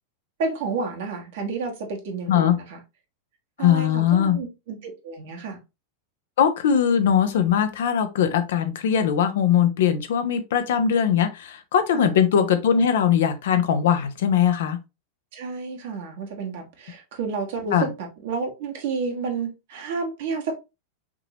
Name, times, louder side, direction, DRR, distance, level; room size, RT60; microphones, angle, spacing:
voice 1, 0.4-2.8 3.6-5.6 11.9-12.2 15.3-20.5, right 4 dB, 55° right, 1.3 m, -31 dB
voice 2, 3.6-4.4 6.4-14.8 17.7-17.9, left 8 dB, 60° left, 0.7 m, -20 dB
6.0 x 3.0 x 2.8 m
figure-of-eight pair, 90°, 0 cm